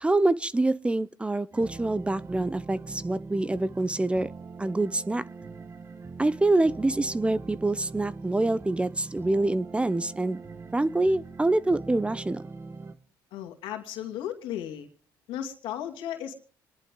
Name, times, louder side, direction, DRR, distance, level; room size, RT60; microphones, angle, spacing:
voice 1, 0.0-4.3 4.6-5.2 6.2-10.4 10.7-12.4, right 2 dB, 15° right, 0.6 m, -26 dB
sound 1, 1.5-12.9, right 3 dB, 30° right, 1.4 m, -42 dB
voice 2, 13.3-14.9 15.3-16.3, left 10 dB, 80° left, 2.6 m, -35 dB
26.5 x 11.0 x 3.7 m
cardioid pair, 85°, 8 cm